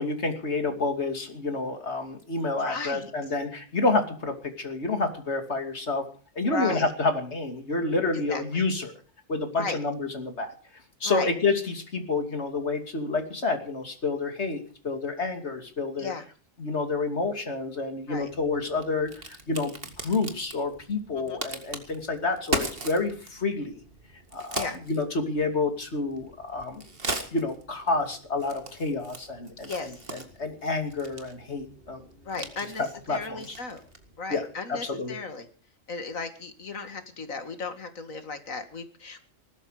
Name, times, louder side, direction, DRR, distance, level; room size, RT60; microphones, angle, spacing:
voice 1, 0.0-6.0 6.3-8.9 9.3-10.5 11.0-16.1 16.6-23.8 24.3-26.8 27.3-32.0 32.3-32.5 33.1-33.5 34.3-35.2, left 3 dB, 55° left, 5 dB, 3.0 m, -29 dB
voice 2, 2.6-3.1 6.5-6.9 8.3-8.4 9.6-9.8 11.0-11.3 16.0-16.2 18.1-18.3 21.1-21.4 24.6-24.8 29.7-30.0 32.3-33.8 34.2-35.5 35.9-39.2, left 4 dB, 80° left, 8 dB, 2.4 m, -35 dB
Crack, 18.1-34.2, right 2 dB, 45° right, 2.2 m, -39 dB
19.5 x 13.0 x 5.0 m, 0.39 s
omnidirectional pair, 1.4 m